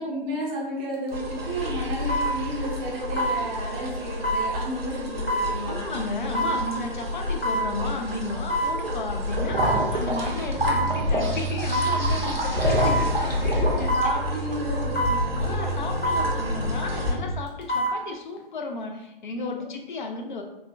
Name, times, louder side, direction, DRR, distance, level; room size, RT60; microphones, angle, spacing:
voice 1, 0.0-5.8 13.7-15.5, right 1 dB, 15° right, -4 dB, 0.5 m, -32 dB
sound 1, 0.9-1.1 2.1-2.3 3.2-3.4 4.2-4.5 5.3-5.5 6.3-6.6 7.4-7.7 8.5-8.8 9.6-9.8 10.6-10.9 11.7-12.0 12.8-13.1 13.9-14.1 14.9-15.2 16.0-16.3 17.5-17.9 18.4-18.5, equal, 75° left, 1.0 m, -25 dB
sound 2, 1.1-17.1, left 1 dB, 85° right, 0.9 m, -28 dB
voice 2, 5.6-14.2 15.4-20.4, left 3 dB, 55° left, 3 dB, 0.5 m, -34 dB
sound 3, 10.4-17.2, right 2 dB, 30° left, 0.8 m, -33 dB
4.1 x 2.1 x 2.5 m, 0.91 s
figure-of-eight pair, 120°, 29 cm